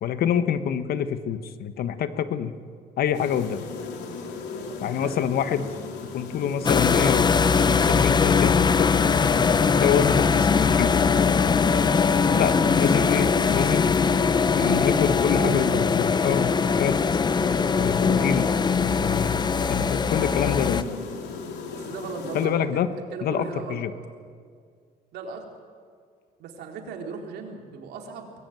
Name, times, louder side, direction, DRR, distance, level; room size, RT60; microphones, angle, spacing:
voice 1, 0.0-2.5 3.0-3.6 4.8-5.7 6.1-7.4 7.8-8.9 9.6-11.0 12.3-13.9 14.5-17.0 17.8-18.5 18.8-20.8 22.3-22.9 23.2-23.9, left 8 dB, 65° left, 11 dB, 1.4 m, -26 dB
sound 1, 3.1-22.5, left 4 dB, 90° left, 3.2 m, -36 dB
sound 2, 6.6-20.8, left 5 dB, 25° left, 0.8 m, -21 dB
voice 2, 21.7-22.8 23.1-23.9 25.1-25.4 26.4-28.3, right 5 dB, 75° right, 2 dB, 3.8 m, -37 dB
23.5 x 20.0 x 9.2 m, 2.1 s
cardioid pair, 110°, 17 cm